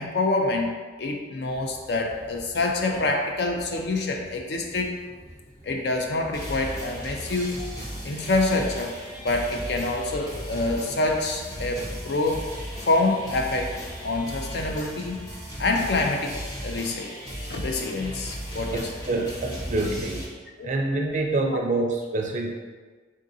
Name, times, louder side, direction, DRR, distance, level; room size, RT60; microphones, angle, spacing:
voice 1, 0.0-5.0 5.6-7.6 8.0-8.9 9.2-12.5 12.9-13.7 14.0-15.3 15.6-16.3 16.6-17.1 17.5-18.8 20.6-20.7, left 2 dB, 60° left, 2 dB, 0.5 m, -26 dB
sound 1, 1.5-14.5, equal, 35° left, 1.5 m, -49 dB
sound 2, 6.3-20.2, equal, 20° left, 0.8 m, -36 dB
voice 2, 18.7-20.3 20.6-22.5, right 2 dB, 40° right, 1 dB, 0.4 m, -26 dB
3.7 x 3.7 x 2.7 m, 1.4 s
head